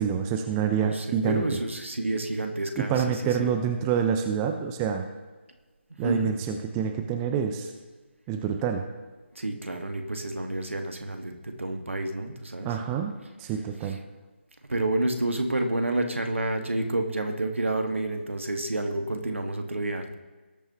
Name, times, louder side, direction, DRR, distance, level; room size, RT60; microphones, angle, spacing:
voice 1, 0.0-1.6 2.8-5.1 6.0-7.7 8.3-8.8 12.6-13.1 13.4-14.0, right 7 dB, 15° right, 5 dB, 0.5 m, -27 dB
voice 2, 0.8-3.5 6.0-6.3 9.3-12.7 14.7-20.1, right 2 dB, 80° right, 4 dB, 1.6 m, -29 dB
19.0 x 8.8 x 2.9 m, 1.3 s
figure-of-eight pair, 155°, 7 cm